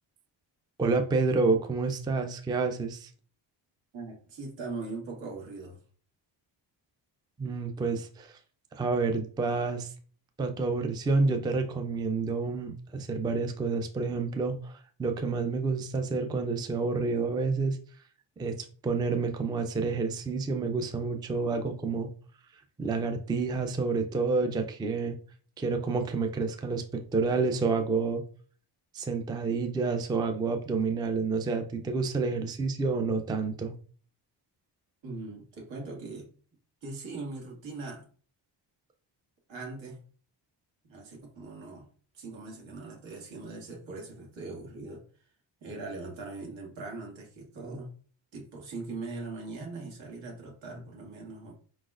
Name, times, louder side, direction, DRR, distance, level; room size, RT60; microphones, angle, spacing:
voice 1, 0.8-3.1 7.4-8.4 8.7-9.9 10.4-17.8 18.4-18.6 18.8-22.1 22.8-25.2 25.6-28.2 28.9-33.8, right 4 dB, 10° right, 6 dB, 0.3 m, -29 dB
voice 2, 3.9-5.8 35.0-36.3 36.8-38.1 39.5-40.1 40.9-41.9 42.1-45.0 45.6-48.0 48.3-51.5, right 3 dB, 85° right, -1 dB, 2.0 m, -40 dB
4.9 x 4.0 x 2.4 m, 0.42 s
cardioid pair, 145°, 45 cm